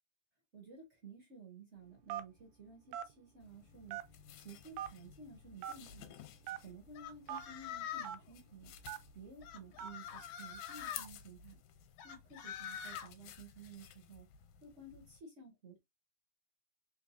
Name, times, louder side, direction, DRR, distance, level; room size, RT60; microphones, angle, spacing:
voice 1, 0.5-4.0 4.3-6.2 6.6-8.7 9.1-11.6 12.0-14.3 14.6-15.8, right 4 dB, 45° right, 0.9 m, -54 dB
Telephone, 2.1-2.4 2.9-3.1 3.9-4.3 4.8-4.9 5.6-5.8 6.4-6.6 7.3-7.4 8.0-8.2 8.9-9.1 9.8-10.0, right 11 dB, 85° right, 1.5 m, -41 dB
sound 1, 3.4-15.2, left 9 dB, 90° left, 2.1 m, -55 dB
sound 2, 7.0-8.2 9.4-11.1 12.0-13.1, left 9 dB, 75° left, 1.4 m, -45 dB
4.0 x 3.6 x 2.6 m
omnidirectional pair, 3.5 m